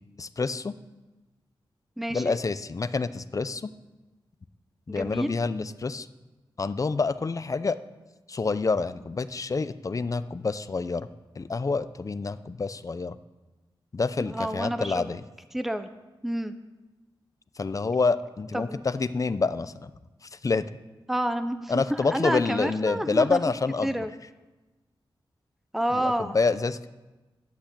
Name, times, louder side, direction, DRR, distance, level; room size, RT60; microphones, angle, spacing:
voice 1, 0.2-0.7 2.1-3.7 4.9-6.1 6.6-7.7 8.3-11.1 11.4-13.2 13.9-15.2 17.6-19.9 20.3-20.6 21.7-24.0 25.9-26.9, left 4 dB, 40° left, 13 dB, 0.6 m, -27 dB
voice 2, 2.0-2.4 4.9-5.3 14.2-15.1 15.5-15.9 16.2-16.5 18.5-18.8 21.1-23.4 23.8-24.1 25.7-26.4, right 1 dB, 5° right, 10 dB, 0.6 m, -29 dB
11.5 x 8.3 x 8.5 m, 1.1 s
wide cardioid pair, 115°, 9 cm